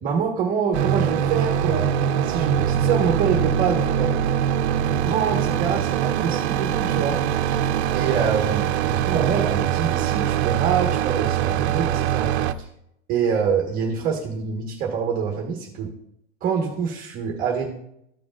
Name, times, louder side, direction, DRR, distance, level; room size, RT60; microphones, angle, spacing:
voice 1, 0.0-4.1 4.8-7.2 7.5-7.6 7.9-12.3 12.6-12.7 13.1-15.9 16.4-17.7, right 6 dB, 25° right, 0 dB, 1.2 m, -26 dB
sound 1, 0.7-12.5, right 9 dB, 70° right, 0.7 m, -23 dB
14.0 x 5.1 x 2.4 m, 0.76 s
supercardioid pair, 170°, 33 cm